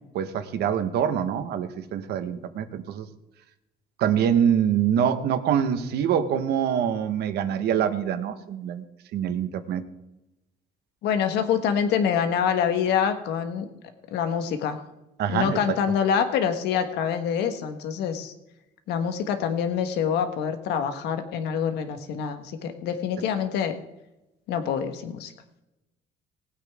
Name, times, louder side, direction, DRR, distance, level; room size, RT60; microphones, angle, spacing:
voice 1, 0.1-3.1 4.0-8.8 9.1-9.8 15.2-15.6, right 8 dB, 75° right, 9 dB, 1.4 m, -25 dB
voice 2, 11.0-13.7 14.1-14.8 15.3-18.3 18.9-23.8 24.5-25.3, left 7 dB, 85° left, 8 dB, 1.4 m, -26 dB
19.5 x 8.7 x 3.6 m, 0.94 s
cardioid pair, 110°, 17 cm